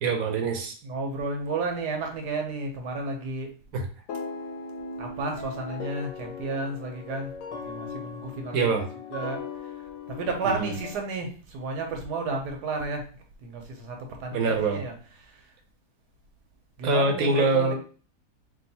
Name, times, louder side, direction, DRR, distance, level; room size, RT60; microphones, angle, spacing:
voice 1, 0.0-0.7 3.7-3.8 8.5-8.8 10.5-10.7 14.3-14.8 16.8-17.7, right 3 dB, 65° right, 4 dB, 1.1 m, -24 dB
voice 2, 0.8-3.5 5.0-8.7 9.1-9.4 10.1-13.0 13.4-14.9 16.8-17.7, right 3 dB, 80° right, 2 dB, 1.4 m, -32 dB
sound 1, 4.1-10.9, left 5 dB, 85° left, 1.3 m, -38 dB
3.7 x 2.5 x 4.1 m, 0.39 s
omnidirectional pair, 1.7 m